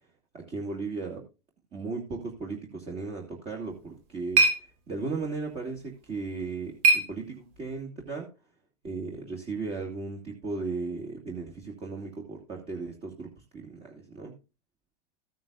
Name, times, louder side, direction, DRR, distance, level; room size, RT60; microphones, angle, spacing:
voice 1, 0.3-1.3 1.7-8.3 8.8-14.3, right 4 dB, 30° right, 0 dB, 2.4 m, -36 dB
sound 1, 3.6-7.8, right 3 dB, 60° right, 2.4 m, -29 dB
14.5 x 9.3 x 2.5 m, 0.28 s
supercardioid pair, 130°, 20 cm